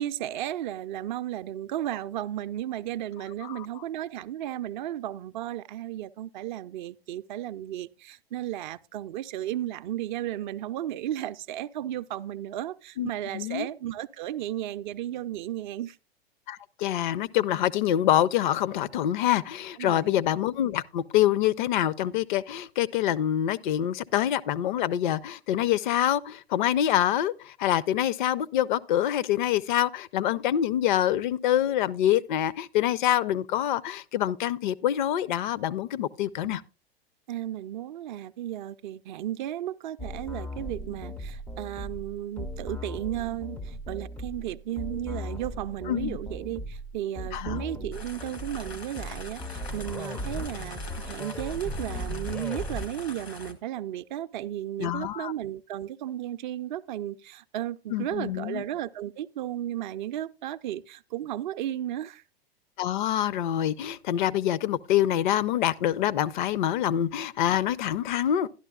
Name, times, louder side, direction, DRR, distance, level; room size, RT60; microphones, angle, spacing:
voice 1, 0.0-16.0 19.8-20.2 36.4-36.6 37.3-50.8 51.1-62.2, right 12 dB, 50° right, 0.5 m, -34 dB
voice 2, 13.0-13.7 16.5-36.6 45.9-46.2 47.3-47.6 54.8-55.3 57.9-58.6 62.8-68.5, left 11 dB, 50° left, 0.5 m, -26 dB
sound 1, 40.0-52.9, equal, 5° left, 0.4 m, -37 dB
sound 2, 47.9-53.5, left 3 dB, 85° left, 1.7 m, -43 dB
12.0 x 11.5 x 2.3 m
figure-of-eight pair, 95°, 30 cm